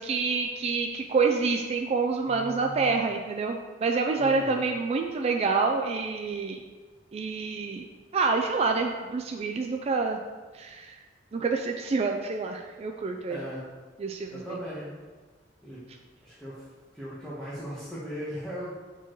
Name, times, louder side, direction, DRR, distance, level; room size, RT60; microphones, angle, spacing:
voice 1, 0.0-6.6 7.1-7.9 8.1-10.2 10.5-11.0 11.3-13.4 14.0-14.6, right 4 dB, 35° right, 3 dB, 0.3 m, -27 dB
voice 2, 2.2-3.1 4.2-4.6 13.3-13.6 14.3-15.0 15.6-15.8 16.2-16.6 16.9-18.7, equal, 5° left, -10 dB, 1.1 m, -38 dB
6.8 x 4.5 x 3.0 m, 1.4 s
head